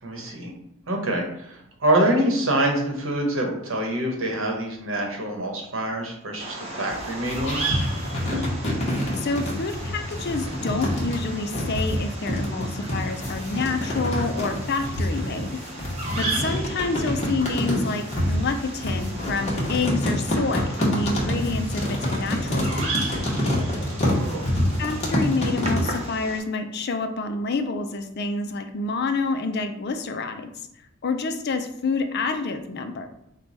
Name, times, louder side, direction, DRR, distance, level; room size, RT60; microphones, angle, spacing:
voice 1, 0.0-0.5 0.9-7.8 16.1-16.4 24.1-24.5, right 1 dB, 70° right, 1 dB, 1.0 m, -26 dB
Bird vocalization bird call bird song, 6.4-26.4, right 2 dB, 30° right, 0.8 m, -35 dB
sound 1, 6.9-26.0, left 1 dB, 30° left, 1.0 m, -26 dB
voice 2, 9.2-15.6 16.2-23.0 24.8-30.5 31.0-33.1, left 3 dB, 50° left, 7 dB, 0.4 m, -28 dB
4.8 x 2.2 x 4.0 m, 0.78 s
head